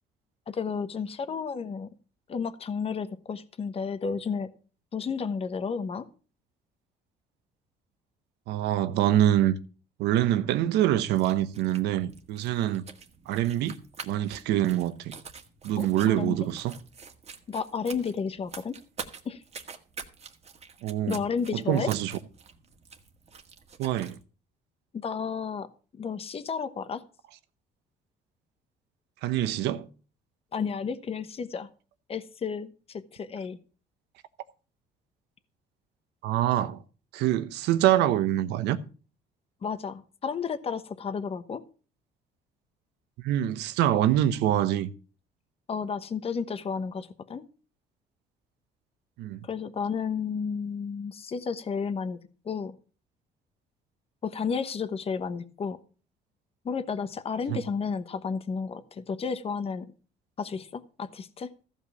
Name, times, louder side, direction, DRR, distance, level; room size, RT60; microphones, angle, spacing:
voice 1, 0.5-1.9 2.3-4.5 4.9-6.1 15.8-16.4 17.5-18.8 19.2-19.4 21.1-21.9 24.9-25.7 26.0-27.0 30.5-31.7 32.1-33.6 39.6-41.6 45.7-47.5 49.4-52.2 52.4-52.8 54.2-55.8 56.6-59.9 60.4-61.5, left 6 dB, 35° left, 1.1 m, -32 dB
voice 2, 8.5-9.5 10.0-12.9 13.3-15.1 15.6-16.7 20.8-21.2 21.5-22.1 23.8-24.2 29.2-29.9 36.2-36.8 37.1-38.8 43.2-44.9 49.2-49.4 57.5-57.6, right 12 dB, 85° right, 1.1 m, -25 dB
sound 1, 11.0-24.2, right 6 dB, 40° right, 1.7 m, -46 dB
14.5 x 5.4 x 7.0 m
cardioid pair, 110°, 17 cm